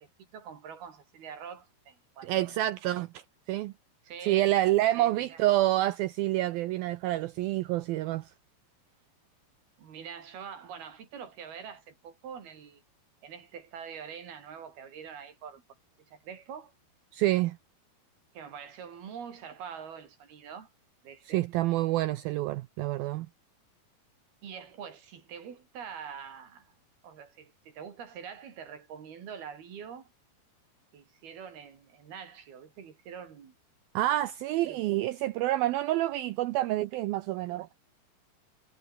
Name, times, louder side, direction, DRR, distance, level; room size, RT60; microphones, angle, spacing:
voice 1, 0.0-2.5 4.0-4.6 5.0-5.4 9.8-12.8 13.2-15.6 16.1-16.7 18.3-20.7 21.0-21.5 24.4-26.7 27.0-30.1 30.9-33.5 34.6-35.0, right 7 dB, 60° right, 4.9 m, -45 dB
voice 2, 2.2-3.7 4.2-8.3 17.1-17.6 21.3-23.3 34.0-37.7, right 15 dB, 85° right, 2.1 m, -28 dB
omnidirectional pair, 5.0 m